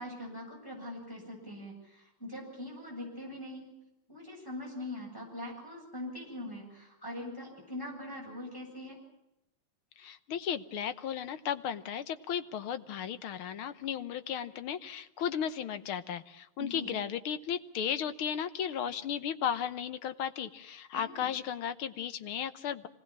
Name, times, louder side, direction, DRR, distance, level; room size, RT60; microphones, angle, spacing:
voice 1, 0.0-3.7 4.1-9.0 16.6-16.9 20.9-21.3, left 1 dB, 10° left, -1 dB, 8.0 m, -42 dB
voice 2, 10.0-22.9, left 8 dB, 75° left, 12 dB, 1.9 m, -35 dB
25.5 x 19.0 x 7.4 m, 0.89 s
omnidirectional pair, 2.4 m